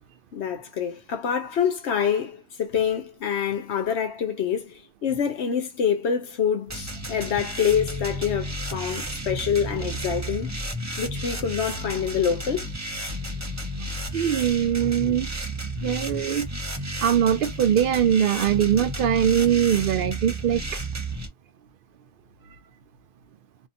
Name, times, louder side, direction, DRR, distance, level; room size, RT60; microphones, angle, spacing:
voice 1, 0.3-10.5 11.0-12.7, left 7 dB, 85° left, 1.1 m, -26 dB
sound 1, 6.7-21.3, right 1 dB, 20° right, 0.6 m, -32 dB
voice 2, 14.1-15.3 15.8-16.5 17.0-20.6, right 9 dB, 60° right, 0.7 m, -22 dB
2.7 x 2.7 x 2.6 m
omnidirectional pair, 1.1 m